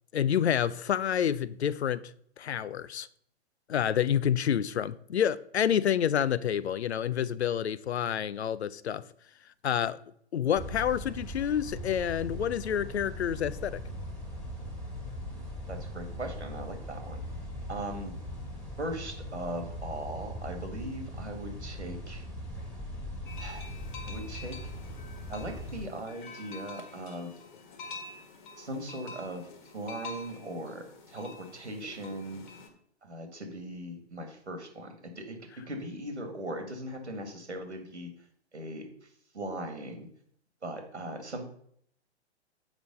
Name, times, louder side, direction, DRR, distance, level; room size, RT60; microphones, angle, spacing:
voice 1, 0.1-2.0 2.4-3.1 3.7-9.0 9.6-10.0 10.3-13.8, left 9 dB, 75° left, 0.5 m, -28 dB
sound 1, 10.5-25.9, equal, 5° left, 1.8 m, -40 dB
voice 2, 15.7-17.2 17.7-18.2 18.8-22.2 23.4-23.7 24.1-24.6 25.3-27.3 28.6-32.4 33.0-35.4 35.7-38.1 38.5-38.9 39.3-40.1 40.6-41.4, right 1 dB, 85° right, 1.9 m, -39 dB
sound 2, 23.3-32.7, left 3 dB, 45° left, 1.5 m, -47 dB
7.4 x 5.0 x 5.2 m
figure-of-eight pair, 120°, 33 cm